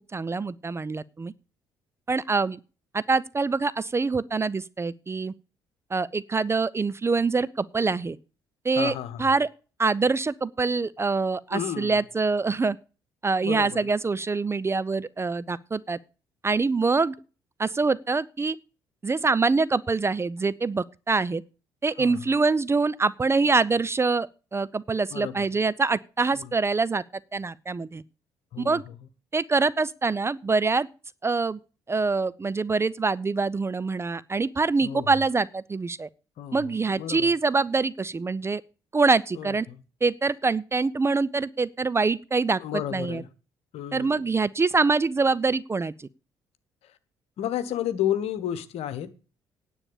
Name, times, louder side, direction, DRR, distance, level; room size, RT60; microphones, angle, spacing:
voice 1, 0.1-1.3 2.1-2.6 2.9-5.3 5.9-8.2 8.6-9.5 9.8-12.8 13.2-16.0 16.4-17.2 17.6-18.6 19.0-21.4 21.8-27.0 27.3-28.0 28.6-28.8 29.3-30.9 31.2-31.6 31.9-36.1 36.5-38.6 38.9-39.7 40.0-43.2 43.9-46.1, right 4 dB, 20° right, 0.5 m, -25 dB
voice 2, 8.8-9.3 11.5-11.9 13.4-13.8 22.0-22.2 25.1-25.5 26.3-26.5 28.5-29.0 34.8-35.1 36.4-36.7 37.0-37.3 39.4-39.8 42.6-43.3 43.7-44.2 47.4-49.1, left 11 dB, 55° left, 1.2 m, -32 dB
9.8 x 8.7 x 6.9 m
figure-of-eight pair, 45°, 12 cm